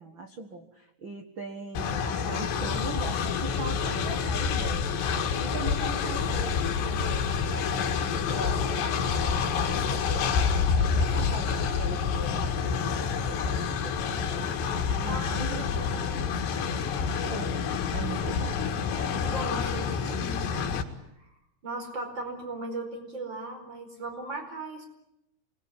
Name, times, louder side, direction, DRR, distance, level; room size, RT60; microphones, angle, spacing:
voice 1, 0.0-4.9 5.4-8.9 9.2-10.3 10.6-12.7 13.3-14.5 14.9-15.7 17.2-17.5 17.9-18.6, right 3 dB, 75° right, 6 dB, 1.1 m, -40 dB
Train, 1.8-20.8, left 6 dB, 80° left, 4.2 m, -28 dB
voice 2, 15.1-16.4 19.0-20.8 21.2-21.3 21.6-24.9, right 2 dB, 25° right, 6 dB, 5.1 m, -38 dB
27.5 x 21.0 x 9.9 m, 0.84 s
omnidirectional pair, 5.0 m